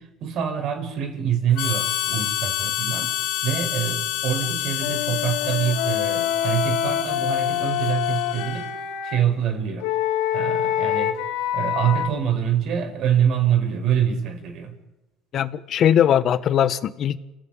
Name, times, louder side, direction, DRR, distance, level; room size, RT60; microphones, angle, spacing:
voice 1, 0.0-3.1 3.4-8.7 9.0-9.9 10.3-11.2 11.5-14.7, right 9 dB, 50° right, 7 dB, 5.7 m, -25 dB
Harmonica, 1.6-8.8, left 13 dB, 65° left, 1.8 m, -28 dB
Wind instrument woodwind instrument, 4.8-9.2 9.8-12.1, left 11 dB, 80° left, 3.8 m, -25 dB
voice 2, 15.3-17.2, left 10 dB, 40° left, 13 dB, 1.5 m, -20 dB
29.5 x 16.5 x 9.0 m, 1.0 s
cardioid pair, 135°, 0 cm